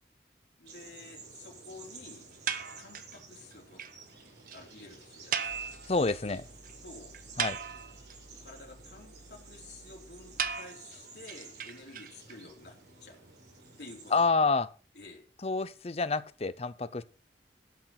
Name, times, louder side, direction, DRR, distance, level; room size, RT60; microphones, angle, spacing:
voice 1, 0.6-2.3 2.8-3.8 4.5-6.4 6.8-7.1 8.4-13.2 13.8-14.6 14.9-15.3, left 2 dB, 70° left, 3.6 m, -51 dB
sound 1, 0.7-14.3, right 3 dB, 70° right, 5.0 m, -52 dB
sound 2, 2.5-3.2 3.5-3.6 3.8-3.9 4.2-4.3 4.5-4.6 5.3-6.3 6.6-6.7 7.1-8.1 10.4-12.3, right 7 dB, 50° right, 1.0 m, -36 dB
sound 3, 5.5-10.5, right 1 dB, 55° left, 3.4 m, -56 dB
voice 2, 5.9-6.4 7.4-7.6 14.1-14.7 15.4-17.0, left 3 dB, 35° left, 0.6 m, -28 dB
12.0 x 6.6 x 5.9 m
head